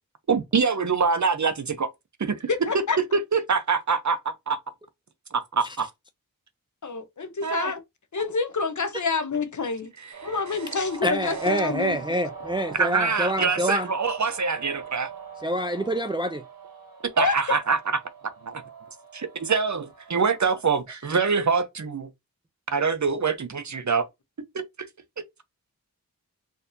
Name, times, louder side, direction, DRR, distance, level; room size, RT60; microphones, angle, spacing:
voice 1, 0.3-1.9 2.2-2.5 3.1-4.6 5.3-5.9 7.4-7.7 10.2-10.3 12.8-15.1 17.2-17.8 18.5-18.6 19.1-22.1 22.7-24.1 24.5-24.6, right 5 dB, 50° right, 0.6 m, -24 dB
voice 2, 2.5-3.0 6.8-7.8 8.1-9.9 10.2-12.0 17.2-17.4, left 4 dB, 55° left, 0.7 m, -27 dB
sound 1, 10.1-20.4, right 6 dB, 70° right, 1.2 m, -42 dB
voice 3, 11.0-13.9 15.4-16.4, equal, 15° right, 0.3 m, -27 dB
4.4 x 2.7 x 2.6 m
wide cardioid pair, 60°, 36 cm